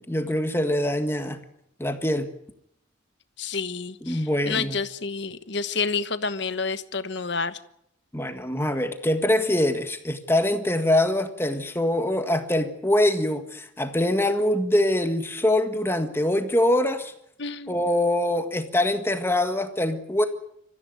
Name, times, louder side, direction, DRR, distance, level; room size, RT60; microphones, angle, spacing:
voice 1, 0.1-1.4 1.8-2.3 4.0-4.8 8.1-17.1 17.7-20.2, left 1 dB, 10° left, 1.7 m, -24 dB
voice 2, 3.4-7.6 17.4-17.8, left 4 dB, 60° left, 1.2 m, -29 dB
25.0 x 15.0 x 9.3 m
head